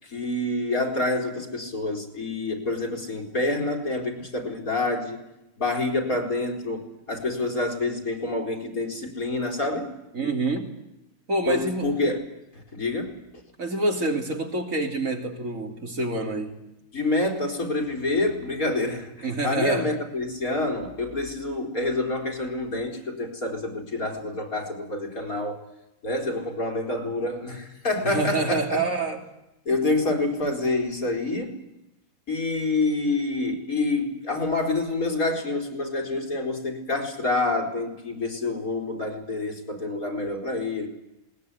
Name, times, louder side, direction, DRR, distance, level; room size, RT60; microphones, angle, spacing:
voice 1, 0.0-5.2 5.6-9.9 11.5-12.2 12.7-13.2 16.9-25.6 26.0-28.8 29.7-31.6 32.3-40.9, left 2 dB, 85° left, 3 dB, 4.6 m, -27 dB
voice 2, 10.1-10.8 11.3-11.9 13.6-16.6 19.2-19.9 28.0-29.3, right 2 dB, 65° right, 3 dB, 3.4 m, -27 dB
20.0 x 20.0 x 9.7 m, 0.91 s
omnidirectional pair, 1.5 m